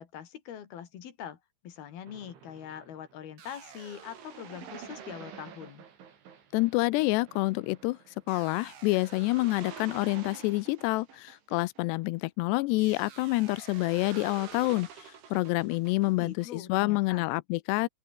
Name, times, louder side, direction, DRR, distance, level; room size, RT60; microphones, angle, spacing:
voice 1, 0.0-1.4 1.6-5.8 16.1-17.3, left 9 dB, 60° left, 4.3 m, -43 dB
sound 1, 2.1-12.2 12.8-16.5, right 7 dB, 85° right, 6.6 m, -48 dB
voice 2, 6.5-17.9, left 21 dB, 85° left, 2.6 m, -28 dB
open air
omnidirectional pair, 5.3 m